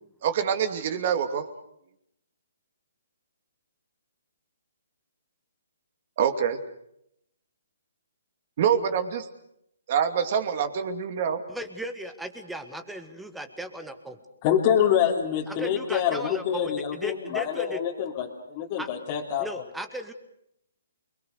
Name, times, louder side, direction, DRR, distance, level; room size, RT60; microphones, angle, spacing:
voice 1, 0.2-1.5 6.2-6.6 8.6-9.3 9.9-11.4, right 8 dB, 40° right, 9 dB, 2.7 m, -25 dB
voice 2, 11.5-14.2 15.5-17.8 18.8-18.9 19.4-20.1, right 1 dB, 5° right, 8 dB, 1.7 m, -37 dB
voice 3, 14.4-19.5, left 9 dB, 30° left, -1 dB, 3.0 m, -26 dB
28.5 x 22.0 x 6.6 m, 0.76 s
hypercardioid pair, 160°, 0 cm